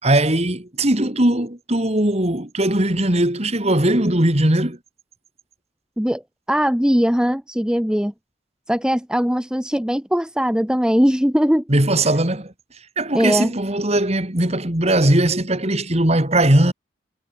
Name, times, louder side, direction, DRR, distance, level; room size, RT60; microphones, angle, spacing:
voice 1, 0.0-4.8 11.7-12.5 13.0-16.7, right 1 dB, 35° right, 2.9 m, -19 dB
voice 2, 6.5-8.1 8.7-11.6 13.1-13.5, equal, 5° right, 1.0 m, -20 dB
head